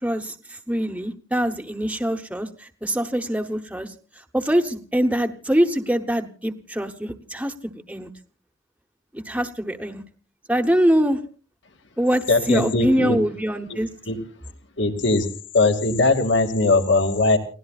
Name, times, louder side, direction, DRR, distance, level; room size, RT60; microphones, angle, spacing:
voice 1, 0.0-3.9 4.3-8.1 9.1-10.0 10.5-11.2 12.0-13.9, equal, 5° right, 5 dB, 1.0 m, -24 dB
voice 2, 12.3-13.2 13.7-13.8 14.1-14.2 14.8-15.3 15.5-17.4, left 3 dB, 60° left, 7 dB, 2.2 m, -20 dB
29.5 x 17.5 x 2.4 m, 0.39 s
head